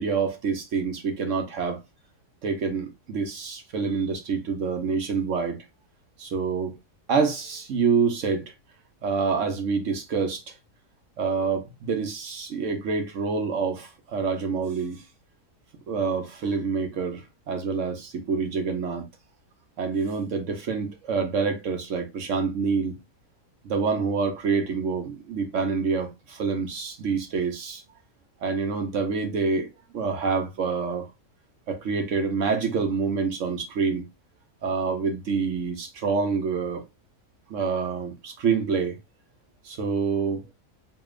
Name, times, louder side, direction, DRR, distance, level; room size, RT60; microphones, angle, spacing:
voice 1, 0.0-1.8 2.4-5.6 6.2-6.8 7.1-8.5 9.0-10.6 11.2-15.0 15.9-19.1 19.8-22.9 23.6-27.8 28.4-31.1 31.7-34.0 34.6-36.8 37.5-39.0 39.6-40.5, right 5 dB, 60° right, 1.0 m, -27 dB
4.8 x 2.9 x 2.4 m
omnidirectional pair, 1.6 m